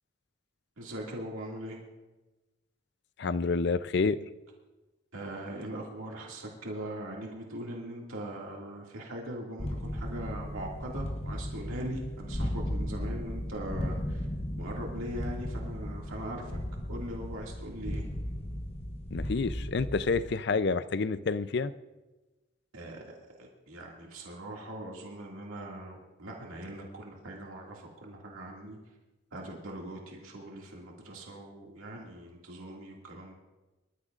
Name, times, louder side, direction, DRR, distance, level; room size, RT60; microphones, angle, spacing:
voice 1, 0.8-1.8 5.1-14.3 14.5-16.6 16.9-18.0 22.7-23.0 23.4-28.8 29.3-33.3, right 1 dB, 90° right, -1 dB, 2.2 m, -41 dB
voice 2, 3.2-4.2 19.1-21.7, left 4 dB, 55° left, 14 dB, 0.5 m, -28 dB
sound 1, 9.6-20.2, equal, 30° left, 1.1 m, -36 dB
25.0 x 13.5 x 2.5 m, 1.1 s
head